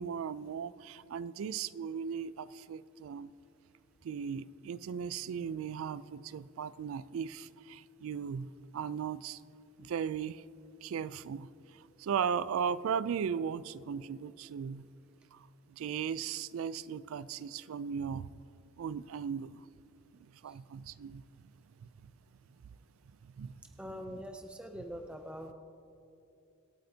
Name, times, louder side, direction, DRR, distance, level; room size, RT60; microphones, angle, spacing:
voice 1, 0.0-3.3 4.0-8.5 8.7-9.4 9.8-10.4 10.8-14.9 15.3-18.3 18.8-19.6 20.4-21.2 22.0-22.1 23.4-23.6 24.1-24.2, right 7 dB, 70° right, 18 dB, 0.3 m, -37 dB
voice 2, 23.8-25.5, equal, 5° right, 4 dB, 0.5 m, -43 dB
25.5 x 8.6 x 2.8 m, 2.7 s
head